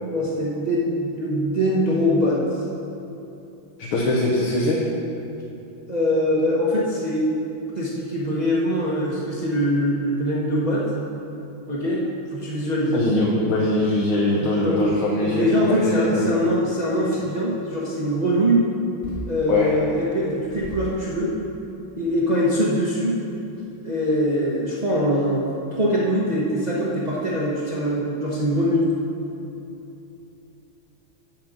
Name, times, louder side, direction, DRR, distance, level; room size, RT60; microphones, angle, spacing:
voice 1, 0.0-2.4 5.9-7.4 7.7-10.9 11.7-12.0 12.3-13.0 14.4-14.9 15.2-18.6 19.3-21.3 22.0-23.1 23.8-28.9, equal, 45° right, -6 dB, 0.5 m, -23 dB
voice 2, 3.9-4.8 12.9-16.3 19.5-19.7, left 2 dB, 80° left, -4 dB, 1.7 m, -22 dB
sound 1, 14.8-15.1 16.3-16.4 17.6-17.8 19.0-19.5 19.9-20.0 20.5-21.1 21.7-21.8 22.1-22.2 22.4-22.8, right 2 dB, 60° left, 3.0 m, -37 dB
7.4 x 5.2 x 7.2 m, 2.9 s
omnidirectional pair, 2.3 m